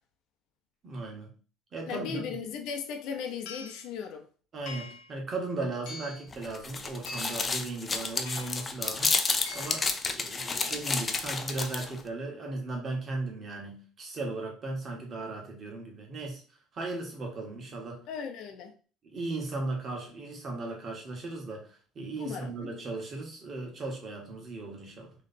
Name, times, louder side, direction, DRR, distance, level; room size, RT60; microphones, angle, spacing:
voice 1, 0.8-1.3 1.7-2.3 4.5-9.1 9.5-16.4 16.7-18.0 19.0-25.1, right 2 dB, 35° right, 1.4 m, -37 dB
voice 2, 1.9-4.3 18.1-18.7 22.2-22.7, left 7 dB, 65° left, 0.7 m, -37 dB
sound 1, 2.7-2.8 3.5-3.9 4.7-5.1 5.9-6.3 7.1-7.5 8.3-8.7 9.5-9.9, left 3 dB, 80° left, 1.0 m, -43 dB
sound 2, 6.3-12.0, left 4 dB, 20° left, 0.4 m, -31 dB
3.2 x 3.2 x 4.1 m
cardioid pair, 140°, 0 cm